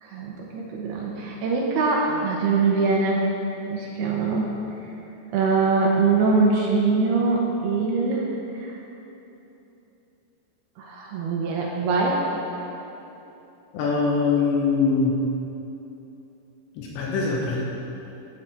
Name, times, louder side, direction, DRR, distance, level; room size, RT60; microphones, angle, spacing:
voice 1, 0.0-3.2 3.7-4.5 5.3-8.3 8.5-8.7 10.8-12.3, right 4 dB, 75° right, -2 dB, 2.7 m, -23 dB
voice 2, 13.7-15.1 16.8-17.6, left 4 dB, 80° left, -2 dB, 3.3 m, -22 dB
11.5 x 9.1 x 4.9 m, 2.9 s
omnidirectional pair, 5.1 m